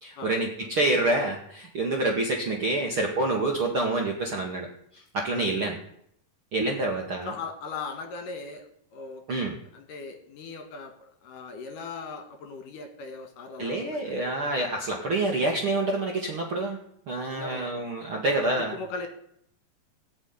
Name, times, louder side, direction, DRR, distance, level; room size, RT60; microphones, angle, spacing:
voice 1, 0.0-4.7 5.1-5.7 6.5-7.3 9.3-9.5 13.6-16.8 17.1-18.7, right 2 dB, 50° right, 0 dB, 1.6 m, -27 dB
voice 2, 7.3-9.2 9.7-14.2 17.3-17.9 18.7-19.1, left 4 dB, 60° left, 6 dB, 2.9 m, -39 dB
18.0 x 6.3 x 9.6 m, 0.70 s
omnidirectional pair, 4.7 m